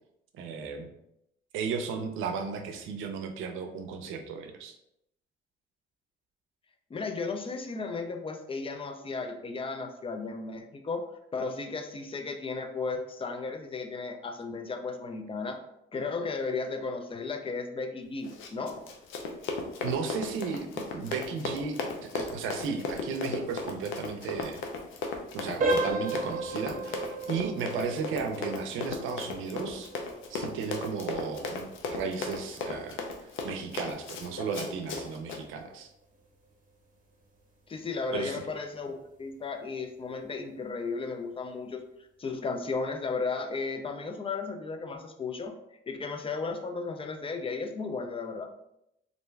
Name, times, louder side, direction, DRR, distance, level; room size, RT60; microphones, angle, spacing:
voice 1, 0.3-0.9 1.5-4.8 19.8-24.6 25.3-29.9 30.3-35.9 38.1-38.4, right 5 dB, 85° right, 6 dB, 0.5 m, -35 dB
voice 2, 6.9-15.6 15.9-18.8 37.7-41.8 42.2-45.5 45.9-48.5, left 4 dB, 25° left, 5 dB, 0.4 m, -34 dB
Run, 18.2-35.4, left 4 dB, 80° left, 0.5 m, -36 dB
sound 1, 25.6-36.3 36.6-36.8 37.4-37.5 38.0-38.2, right 2 dB, 45° right, 0.8 m, -36 dB
2.5 x 2.2 x 3.1 m, 0.81 s
cardioid pair, 90°, 20 cm